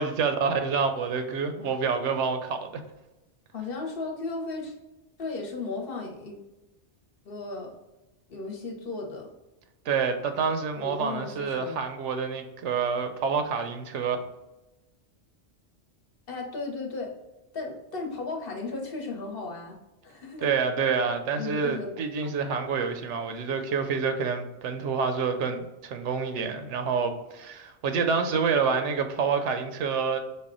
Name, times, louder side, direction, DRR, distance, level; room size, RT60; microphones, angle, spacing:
voice 1, 0.0-2.7 9.9-14.2 20.4-30.2, right 5 dB, 85° right, 7 dB, 0.9 m, -27 dB
voice 2, 3.5-4.7 5.2-6.4 7.2-7.7 8.3-9.3 10.8-11.8 16.3-17.1 17.5-19.8 20.0-20.5 21.3-21.9, left 3 dB, 55° left, 1 dB, 1.0 m, -35 dB
5.3 x 2.2 x 3.7 m, 1.0 s
omnidirectional pair, 1.2 m